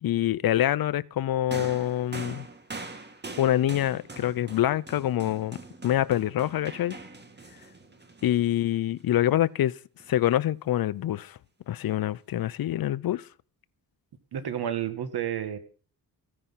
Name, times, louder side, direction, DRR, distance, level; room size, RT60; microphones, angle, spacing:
voice 1, 0.0-2.5 3.4-5.6 5.8-7.0 8.2-9.7 10.1-11.4 11.7-13.2, left 12 dB, 60° left, 0.6 m, -25 dB
sound 1, 1.5-9.0 10.0-10.1, right 3 dB, 25° right, 2.1 m, -43 dB
voice 2, 14.3-15.6, right 9 dB, 70° right, 1.9 m, -30 dB
15.0 x 9.7 x 5.7 m
cardioid pair, 115°, 39 cm